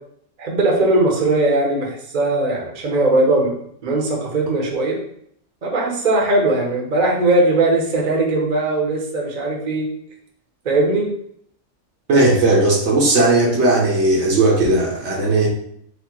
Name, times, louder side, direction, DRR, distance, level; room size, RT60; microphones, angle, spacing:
voice 1, 0.4-3.5 3.8-5.0 5.6-9.9 10.6-11.1, right 2 dB, 40° right, -1 dB, 0.9 m, -19 dB
voice 2, 12.1-15.5, right 2 dB, 60° right, -1 dB, 1.1 m, -16 dB
4.3 x 2.1 x 4.3 m, 0.68 s
omnidirectional pair, 1.3 m